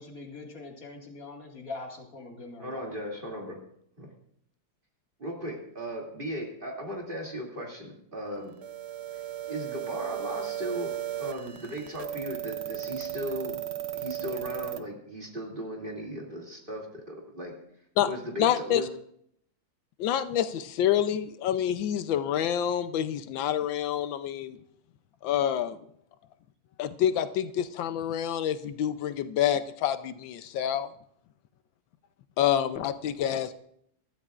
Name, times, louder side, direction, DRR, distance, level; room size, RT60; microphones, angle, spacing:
voice 1, 0.0-3.0, left 3 dB, 50° left, 1 dB, 2.4 m, -43 dB
voice 2, 2.6-3.6 4.0-4.1 5.2-8.5 9.1-9.2 9.5-10.9 11.2-13.6 13.9-17.5 18.0-18.9, equal, 25° right, -1 dB, 2.7 m, -37 dB
sound 1, 8.6-14.8, right 13 dB, 60° right, 0.7 m, -35 dB
voice 3, 18.4-18.8 20.0-24.6 25.2-25.8 26.8-30.9 32.4-33.5, left 10 dB, 85° left, 11 dB, 1.5 m, -27 dB
23.5 x 13.0 x 2.5 m, 0.68 s
omnidirectional pair, 2.0 m